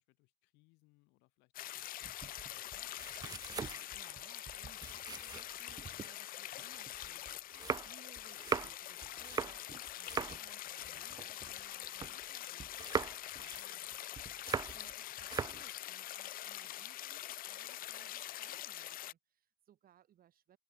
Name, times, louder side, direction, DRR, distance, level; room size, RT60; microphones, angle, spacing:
voice 1, 0.0-3.6 13.5-13.9, left 25 dB, 70° left, 4.2 m, -72 dB
sound 1, 1.5-19.1, left 13 dB, 50° left, 0.6 m, -45 dB
sound 2, 2.0-6.1 6.5-12.3 12.6-14.9 15.2-15.7, right 6 dB, 20° right, 0.4 m, -41 dB
voice 2, 3.9-13.9 14.2-20.6, right 11 dB, 55° right, 5.0 m, -64 dB
hypercardioid pair, 60°, 18 cm